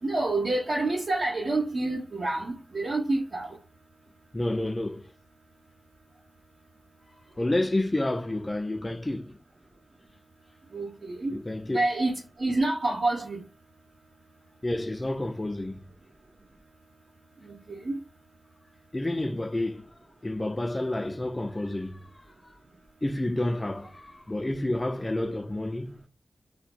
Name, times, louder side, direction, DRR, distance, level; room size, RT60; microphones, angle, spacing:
voice 1, 0.0-3.6 10.7-11.4 11.7-13.4 17.4-18.0 25.2-25.3, right 2 dB, 60° right, 0.8 m, -28 dB
voice 2, 4.3-5.1 7.4-9.4 11.3-11.8 14.6-15.8 18.9-19.9 20.2-22.5 23.0-26.0, left 1 dB, 25° left, 0.4 m, -30 dB
2.8 x 2.2 x 4.0 m
cardioid pair, 65°, 0 cm